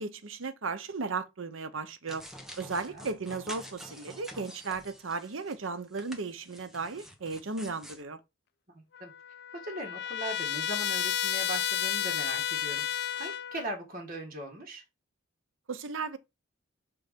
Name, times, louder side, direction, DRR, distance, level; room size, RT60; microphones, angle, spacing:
voice 1, 0.0-2.3 2.6-8.2 15.7-16.2, right 4 dB, 75° right, 0.8 m, -35 dB
sound 1, 2.1-5.6 5.9-8.0, equal, ahead, 1.0 m, -48 dB
voice 2, 2.7-3.1 8.7-9.1 9.5-14.8, right 1 dB, 45° right, 1.7 m, -39 dB
Trumpet, 8.9-13.7, left 10 dB, 55° left, 0.5 m, -32 dB
5.7 x 3.8 x 5.1 m
head